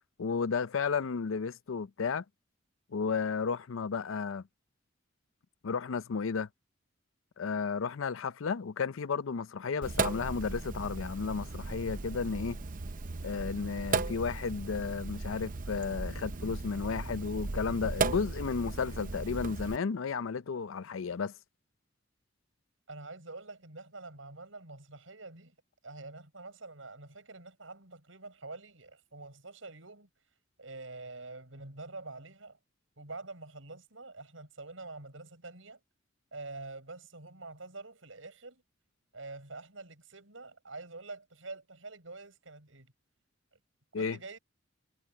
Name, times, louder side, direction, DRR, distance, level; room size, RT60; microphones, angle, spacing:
voice 1, 0.2-2.2 2.9-4.4 5.6-6.5 7.4-12.6 13.2-21.3 43.9-44.2, left 5 dB, 85° left, 0.5 m, -33 dB
Sink (filling or washing), 9.8-19.8, right 3 dB, 40° right, 0.7 m, -36 dB
voice 2, 22.9-25.5 25.8-30.1 30.6-32.6 33.0-35.8 36.3-38.6 39.1-42.9 43.9-44.4, right 3 dB, 80° right, 6.4 m, -46 dB
head